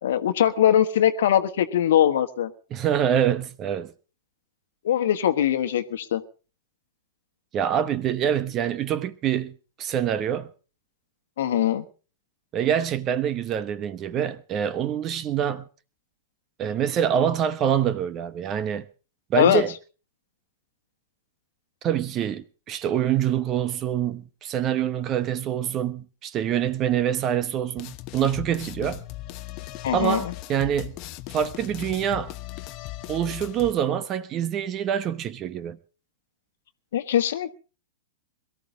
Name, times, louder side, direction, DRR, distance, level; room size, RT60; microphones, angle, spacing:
voice 1, 0.0-2.5 4.8-6.2 11.4-11.8 19.3-19.6 29.8-30.3 36.9-37.5, left 10 dB, 60° left, 1.4 m, -21 dB
voice 2, 2.7-3.9 7.5-10.5 12.5-15.6 16.6-18.8 19.3-19.7 21.8-29.0 29.9-30.9 31.3-32.3 33.1-35.8, right 9 dB, 30° right, 1.0 m, -25 dB
sound 1, 27.8-33.7, left 16 dB, 40° left, 1.0 m, -38 dB
22.5 x 13.5 x 3.8 m
figure-of-eight pair, 105°, 0 cm